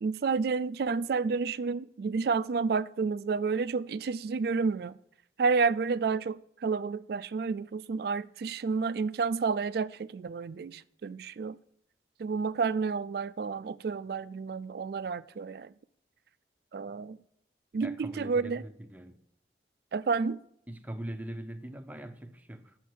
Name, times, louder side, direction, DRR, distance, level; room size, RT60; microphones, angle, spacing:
voice 1, 0.0-5.0 5.4-11.6 12.2-15.7 16.7-17.2 17.7-18.6 19.9-20.4, right 4 dB, 55° right, 0.3 m, -30 dB
voice 2, 17.8-19.2 20.7-22.8, right 1 dB, 10° right, 0.6 m, -41 dB
8.2 x 6.4 x 7.7 m
head